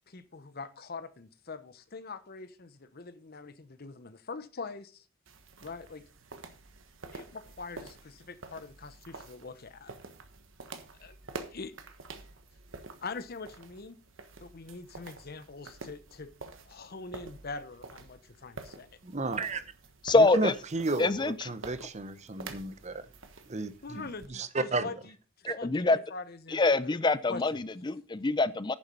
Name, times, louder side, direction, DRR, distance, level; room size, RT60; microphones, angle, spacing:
voice 1, 0.1-5.0 5.6-6.0 7.1-9.9 11.0-11.2 11.5-11.7 13.0-14.0 14.4-16.3 16.7-18.9 23.8-27.0 27.3-27.6, left 4 dB, 50° left, 0.9 m, -43 dB
sound 1, 5.3-24.3, right 3 dB, 75° right, 1.4 m, -48 dB
voice 2, 19.0-19.6 20.2-23.1 23.5-24.9 25.5-25.6, right 3 dB, 35° right, 0.8 m, -33 dB
voice 3, 20.0-20.6 21.0-21.5 25.4-26.0 26.5-28.7, left 3 dB, 20° left, 0.5 m, -25 dB
9.8 x 7.2 x 5.3 m
head